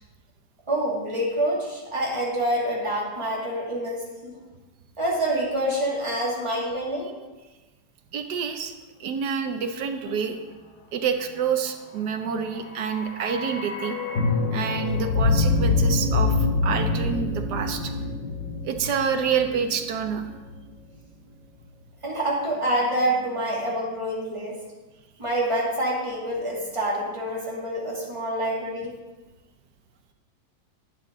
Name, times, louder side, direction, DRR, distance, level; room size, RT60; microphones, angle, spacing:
voice 1, 0.7-4.4 5.0-7.1 22.0-24.6 25.2-28.9, right 1 dB, 15° right, -5 dB, 2.5 m, -27 dB
voice 2, 8.1-8.7 9.0-10.4 10.9-14.0 14.5-16.4 16.6-17.9 18.6-20.3, right 7 dB, 65° right, 6 dB, 1.3 m, -27 dB
sound 1, 12.5-20.6 20.8-20.9, left 3 dB, 50° left, 1.1 m, -25 dB
11.5 x 9.5 x 3.8 m, 1.2 s
omnidirectional pair, 2.0 m